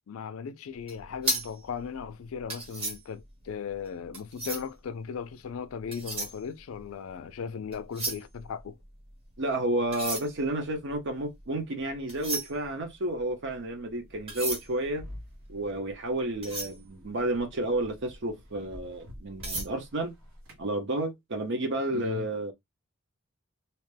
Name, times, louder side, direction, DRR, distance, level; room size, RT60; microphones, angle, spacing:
voice 1, 0.1-8.7 21.9-22.3, left 6 dB, 90° left, 0.4 m, -37 dB
sound 1, 0.8-4.9 5.6-7.3 7.6-9.3 9.8-17.8 18.3-18.4 18.8-19.7, right 2 dB, 30° right, 0.8 m, -36 dB
voice 2, 9.4-15.0 15.5-20.1 20.6-22.5, right 1 dB, 60° right, 0.7 m, -31 dB
sound 2, 14.1-20.7, equal, 80° right, 1.0 m, -48 dB
2.8 x 2.2 x 3.2 m
head